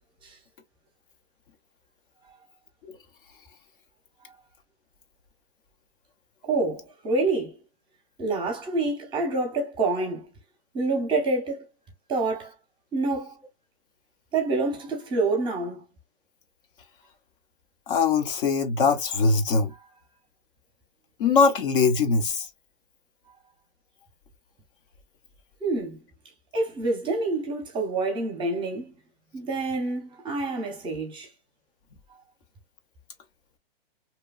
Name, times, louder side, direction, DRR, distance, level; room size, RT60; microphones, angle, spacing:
voice 1, 6.4-7.6 8.2-10.2 10.7-11.7 12.1-12.5 12.9-13.4 14.3-15.8 25.6-26.0 26.5-28.9 29.3-31.3, right 3 dB, 15° right, 0.8 m, -27 dB
voice 2, 17.9-19.7 21.2-22.5, left 4 dB, 55° left, 0.8 m, -22 dB
2.9 x 2.2 x 2.3 m
hypercardioid pair, 135°, 32 cm